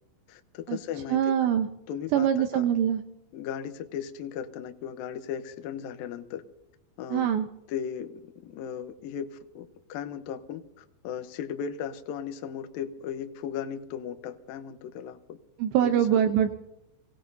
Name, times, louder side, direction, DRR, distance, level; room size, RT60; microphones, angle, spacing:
voice 1, 0.3-1.3 1.9-2.7 3.3-6.4 7.0-7.3 7.7-15.4 15.8-16.2, left 8 dB, 85° left, 8 dB, 2.0 m, -37 dB
voice 2, 1.1-1.7 2.1-3.0 7.1-7.5 15.6-16.5, right 9 dB, 80° right, 6 dB, 2.8 m, -23 dB
27.5 x 19.0 x 2.7 m, 0.87 s
omnidirectional pair, 5.5 m